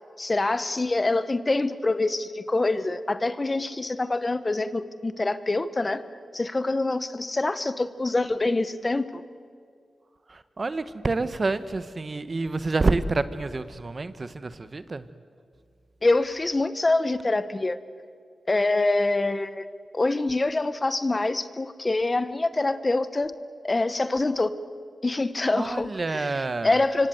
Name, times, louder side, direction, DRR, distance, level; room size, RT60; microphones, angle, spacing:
voice 1, 0.2-6.0 6.3-9.2 16.0-17.8 18.5-19.7 19.9-23.4 23.6-24.5 25.0-27.1, left 2 dB, 30° left, 13 dB, 1.1 m, -25 dB
voice 2, 10.3-15.1 25.5-26.8, right 3 dB, 45° right, 13 dB, 1.1 m, -28 dB
25.0 x 24.5 x 8.0 m, 2.2 s
cardioid pair, 65°, 0 cm